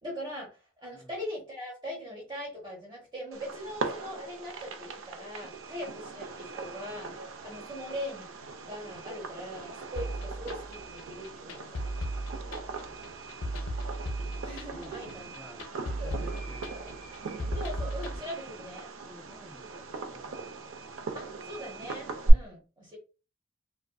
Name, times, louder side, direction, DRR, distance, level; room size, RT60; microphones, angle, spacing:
voice 1, 0.0-11.7 14.4-15.3 16.0-16.1 17.5-18.9 21.1-23.0, equal, 20° right, 1.0 m, -41 dB
Fireworks, 3.3-22.3, right 2 dB, 70° right, 0.4 m, -37 dB
sound 1, 10.0-18.2, right 1 dB, 65° left, 0.5 m, -36 dB
voice 2, 12.5-13.2 14.1-15.6 16.0-17.0 19.0-20.7, equal, 5° left, 0.3 m, -53 dB
2.5 x 2.4 x 2.2 m
head